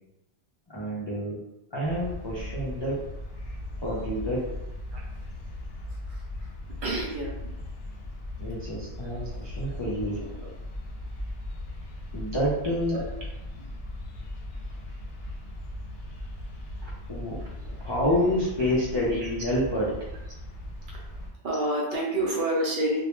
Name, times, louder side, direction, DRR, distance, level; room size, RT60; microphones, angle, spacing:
voice 1, 0.7-1.4 1.7-3.0 3.8-4.4 8.4-10.2 12.1-13.0 16.8-17.4 17.8-19.9, equal, 45° left, -8 dB, 0.3 m, -28 dB
sound 1, 1.8-21.3, left 1 dB, 70° left, 0.7 m, -38 dB
voice 2, 6.8-7.5 9.6-9.8 10.1-10.5 12.9-13.0 13.6-13.7 17.8-17.9 21.4-23.0, right 1 dB, 60° right, -3 dB, 0.6 m, -29 dB
2.2 x 2.1 x 2.9 m, 0.90 s
omnidirectional pair, 1.1 m